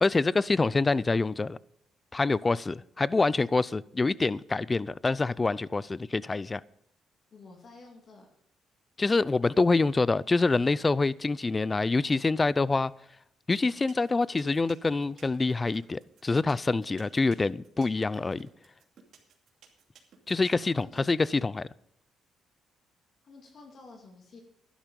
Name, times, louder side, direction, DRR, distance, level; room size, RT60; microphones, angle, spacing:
voice 1, 0.0-1.6 2.1-6.6 9.0-12.9 13.5-18.5 20.3-21.7, left 3 dB, 25° left, 0.4 m, -26 dB
voice 2, 7.3-8.3 20.7-21.0 23.2-24.4, left 3 dB, 50° left, 2.4 m, -51 dB
sound 1, 13.6-21.3, right 8 dB, 70° right, 2.6 m, -55 dB
12.0 x 11.0 x 5.3 m
cardioid pair, 90°, 0 cm